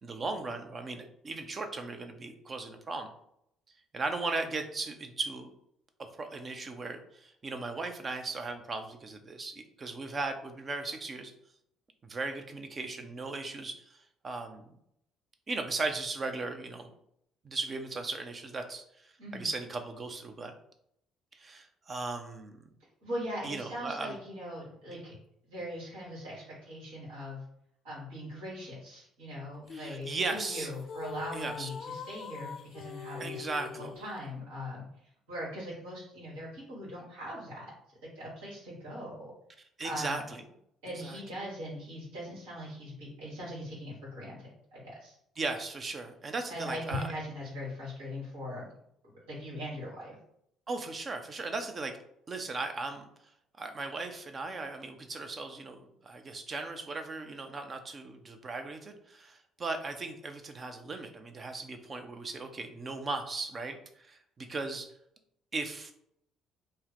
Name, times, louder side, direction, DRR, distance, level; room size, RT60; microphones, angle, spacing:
voice 1, 0.0-3.1 3.9-5.5 6.2-11.3 12.0-14.0 14.2-14.7 15.5-16.9 17.4-20.5 21.3-22.7 23.4-24.2 29.7-30.7 31.3-31.7 33.2-33.9 39.8-40.4 41.0-41.2 45.4-47.1 50.7-52.0 52.3-53.1 53.6-64.9 65.5-65.9, right 3 dB, 35° right, 6 dB, 0.5 m, -37 dB
voice 2, 23.0-25.1 25.4-27.4 27.8-33.4 33.8-34.9 35.3-37.7 38.1-39.3 39.8-40.2 40.8-45.2 46.5-48.7 49.2-50.1, equal, 75° right, -7 dB, 1.3 m, -40 dB
sound 1, 29.7-34.2, left 6 dB, 50° left, 0.3 m, -43 dB
2.7 x 2.1 x 4.0 m, 0.73 s
hypercardioid pair, 50°, 0 cm